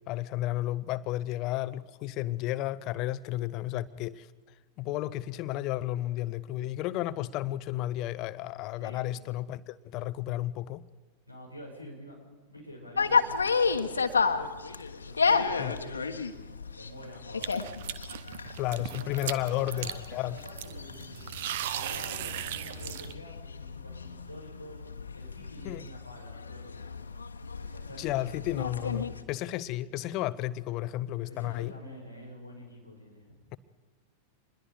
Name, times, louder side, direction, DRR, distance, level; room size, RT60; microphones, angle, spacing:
voice 1, 0.1-4.3 4.8-10.8 15.6-15.8 18.6-20.4 25.6-25.9 28.0-31.7, left 15 dB, 40° left, 16 dB, 0.7 m, -32 dB
voice 2, 8.8-9.1 11.3-12.2 12.5-14.5 15.0-16.3 16.7-17.8 19.0-20.0 20.3-21.3 21.7-24.8 25.1-27.0 27.6-28.5 31.2-33.4, equal, 90° right, 0 dB, 6.5 m, -47 dB
sound 1, 13.0-29.2, left 5 dB, 75° left, 1.3 m, -32 dB
sound 2, 17.4-23.1, right 11 dB, 55° right, 0.9 m, -38 dB
26.5 x 21.0 x 5.0 m, 1.4 s
figure-of-eight pair, 90°, 0 cm